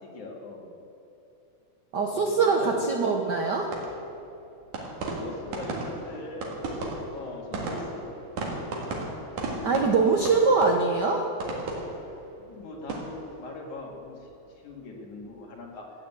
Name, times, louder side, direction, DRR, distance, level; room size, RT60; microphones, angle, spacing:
voice 1, 0.0-0.8 2.1-2.8 5.2-6.6 7.1-8.2 9.9-10.3 12.4-14.3 14.6-15.9, left 2 dB, 85° left, -1 dB, 3.6 m, -40 dB
voice 2, 1.9-3.7 9.6-11.3, right 4 dB, 75° right, 2 dB, 0.9 m, -23 dB
sound 1, 3.6-14.7 15.0-15.5, right 2 dB, 90° right, 3.3 m, -36 dB
13.5 x 9.4 x 8.1 m, 2.7 s
omnidirectional pair, 3.3 m